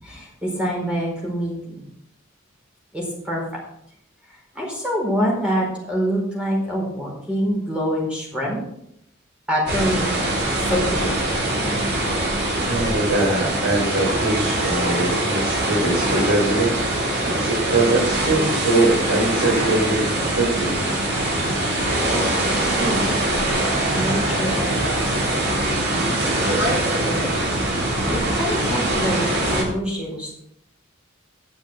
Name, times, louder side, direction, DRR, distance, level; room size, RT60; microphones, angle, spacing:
voice 1, 0.0-1.8 2.9-3.6 4.5-8.6 9.5-10.1 10.5-11.1 22.1-23.4 23.9-26.3 27.0-27.3 28.1-30.3, equal, 5° right, -3 dB, 4.5 m, -26 dB
sound 1, 9.7-29.6, right 1 dB, 55° right, 3.6 m, -23 dB
voice 2, 12.6-20.7, right 2 dB, 85° right, -5 dB, 3.8 m, -22 dB
10.5 x 7.1 x 6.3 m, 0.75 s
head